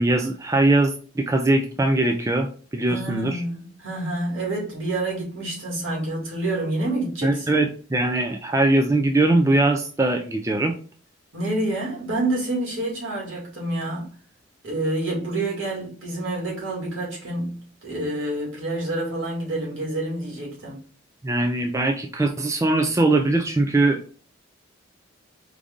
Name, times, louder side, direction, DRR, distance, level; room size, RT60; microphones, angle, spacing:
voice 1, 0.0-3.4 7.2-10.7 21.2-24.0, right 2 dB, 15° right, 0.3 m, -21 dB
voice 2, 2.9-7.6 11.3-14.1 14.6-20.8, right 2 dB, 75° right, 2.3 m, -28 dB
4.7 x 2.5 x 3.6 m
head